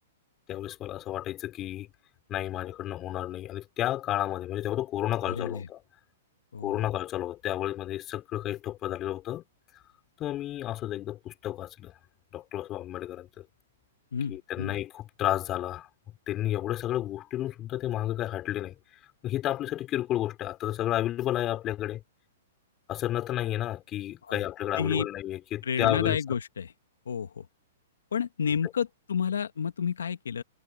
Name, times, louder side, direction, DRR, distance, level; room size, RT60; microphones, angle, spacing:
voice 1, 0.5-1.9 2.3-5.8 6.6-9.4 10.2-12.0 12.3-13.4 14.3-15.9 16.3-18.7 19.2-22.0 22.9-26.2, left 13 dB, 30° left, 4.9 m, -31 dB
voice 2, 5.2-5.7 6.5-6.8 14.1-14.8 24.2-24.4 24.8-25.1 25.6-26.7 27.0-27.5 28.1-30.4, left 7 dB, 85° left, 1.5 m, -30 dB
hypercardioid pair, 135°, 0 cm